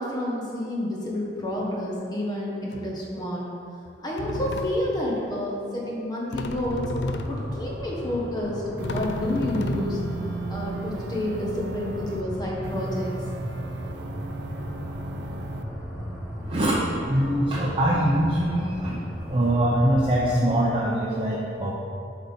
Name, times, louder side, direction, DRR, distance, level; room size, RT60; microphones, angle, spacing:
voice 1, 0.0-3.5 4.0-6.8 7.3-10.0 10.5-13.2 17.2-17.4, left 1 dB, 25° left, -4 dB, 1.2 m, -29 dB
sound 1, 1.6-1.8 2.7-3.1 3.9-4.0 4.2-5.1 6.3-7.8 8.4-8.5 8.8-10.7, left 2 dB, 75° left, 0.4 m, -33 dB
sound 2, 6.7-20.4, equal, 10° right, 1.0 m, -36 dB
sound 3, 8.8-12.2 12.6-15.6, right 2 dB, 75° right, 0.4 m, -36 dB
voice 2, 17.0-19.0 19.3-21.7, right 1 dB, 30° right, -5 dB, 0.7 m, -23 dB
7.7 x 3.5 x 5.7 m, 2.6 s
head